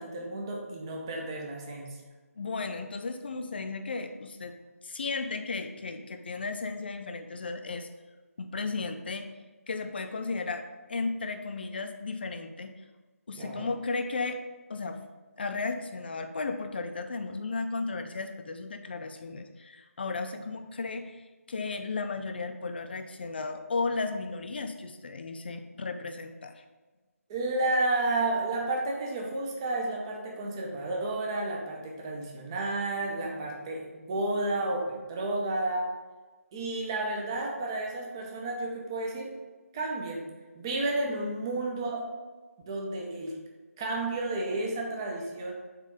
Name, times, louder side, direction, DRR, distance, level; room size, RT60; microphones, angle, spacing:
voice 1, 0.0-2.0 13.4-13.8 27.3-35.9 36.5-39.3 39.7-40.3 40.5-42.1 42.7-43.4 43.8-45.5, right 2 dB, 15° right, 0 dB, 0.7 m, -31 dB
voice 2, 2.4-4.6 4.8-7.9 8.4-9.3 9.7-12.7 13.3-14.4 14.7-15.0 15.4-26.6, left 3 dB, 40° left, 7 dB, 0.6 m, -34 dB
7.4 x 3.3 x 5.0 m, 1.3 s
figure-of-eight pair, 170°, 8 cm